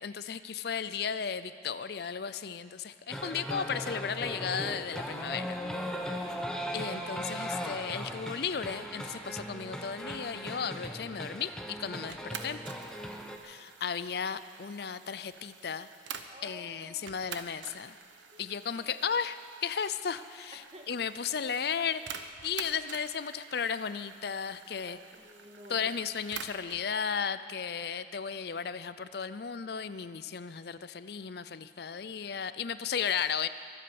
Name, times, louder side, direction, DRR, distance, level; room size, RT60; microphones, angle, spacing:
voice 1, 0.0-5.6 6.7-12.6 13.4-15.9 16.4-18.0 18.4-20.6 20.9-25.0 25.7-33.5, left 7 dB, 55° left, 13 dB, 0.5 m, -35 dB
sound 1, 3.1-13.4, equal, 5° left, 1.0 m, -38 dB
voice 2, 6.1-6.5 16.3-17.2 18.3-18.5 18.7-19.0 20.5-20.9 24.7-26.0, equal, 30° right, 1 dB, 1.7 m, -52 dB
sound 2, 12.1-16.6 17.1-26.9, right 7 dB, 85° right, 0.9 m, -48 dB
23.0 x 8.6 x 7.0 m, 2.2 s
head